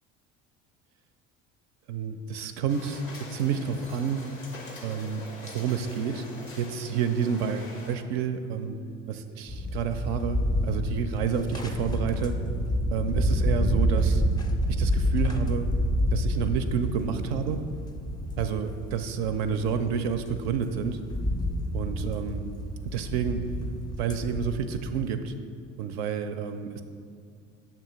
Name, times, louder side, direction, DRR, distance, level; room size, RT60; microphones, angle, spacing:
voice 1, 1.9-3.0 3.3-4.2 4.8-6.2 6.6-8.8 9.1-10.4 10.6-12.3 12.9-14.2 14.8-15.7 16.1-17.6 18.4-21.0 21.7-22.5 22.8-23.4 24.0-25.3 25.8-26.8, right 7 dB, 55° right, 8 dB, 0.5 m, -29 dB
sound 1, 2.7-8.0, left 2 dB, 90° left, 0.8 m, -44 dB
sound 2, 9.5-25.1, equal, 10° left, 0.5 m, -29 dB
7.0 x 3.0 x 5.6 m, 2.3 s
figure-of-eight pair, 65°, 39 cm